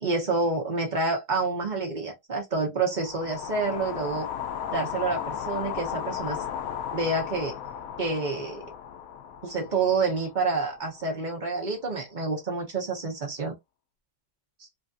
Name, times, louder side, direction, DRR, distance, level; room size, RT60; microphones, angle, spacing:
voice 1, 0.0-4.3 4.7-6.4 6.9-7.6 8.0-8.6 9.4-13.5, right 3 dB, 45° right, 0.6 m, -28 dB
sound 1, 2.9-11.1, left 9 dB, 80° left, 0.7 m, -35 dB
3.2 x 2.5 x 2.4 m
omnidirectional pair, 2.0 m